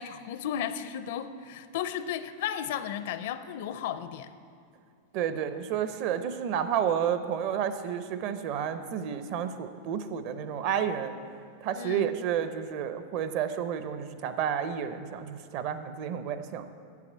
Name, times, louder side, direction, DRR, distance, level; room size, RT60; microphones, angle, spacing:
voice 1, 0.0-4.3 11.7-12.1, left 9 dB, 55° left, 12 dB, 0.5 m, -34 dB
voice 2, 5.1-11.1 11.6-16.6, right 8 dB, 40° right, 10 dB, 0.6 m, -31 dB
8.3 x 7.4 x 8.5 m, 2.3 s
supercardioid pair, 170°, 0 cm